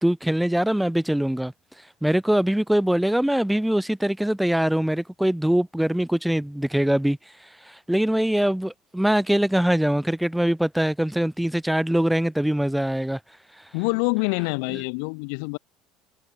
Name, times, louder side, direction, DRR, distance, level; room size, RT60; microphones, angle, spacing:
voice 1, 0.0-1.5 2.0-7.2 7.9-13.2, right 1 dB, 5° right, 2.4 m, -22 dB
voice 2, 13.7-15.6, left 40 dB or more, 80° left, 3.2 m, -26 dB
supercardioid pair, 110°, 0 cm